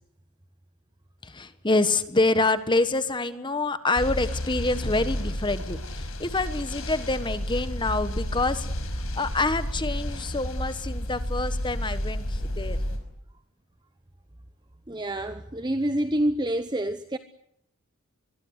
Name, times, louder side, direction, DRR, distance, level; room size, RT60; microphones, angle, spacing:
voice 1, 1.2-8.7 9.1-12.8, left 2 dB, 20° left, 1.3 m, -26 dB
sound 1, 4.0-13.0, equal, 75° left, 5.4 m, -31 dB
voice 2, 14.9-17.2, right 1 dB, 20° right, 0.9 m, -27 dB
23.5 x 22.5 x 8.1 m
head